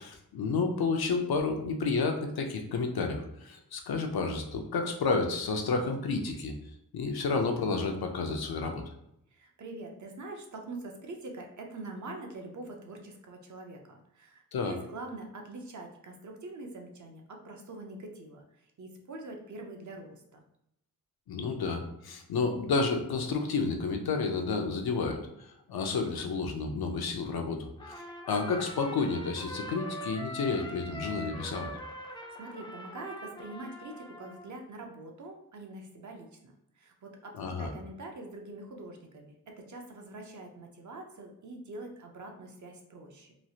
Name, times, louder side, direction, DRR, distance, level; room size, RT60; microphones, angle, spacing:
voice 1, 0.0-6.5 6.9-8.8 14.5-14.7 21.3-27.9 28.3-31.7 37.4-37.7, left 4 dB, 80° left, 4 dB, 0.6 m, -31 dB
voice 2, 9.3-20.4 32.1-43.3, right 2 dB, 50° right, 2 dB, 0.6 m, -44 dB
Trumpet, 27.8-34.5, equal, 15° left, 0.3 m, -43 dB
3.1 x 2.3 x 2.7 m, 0.80 s
wide cardioid pair, 110°, 37 cm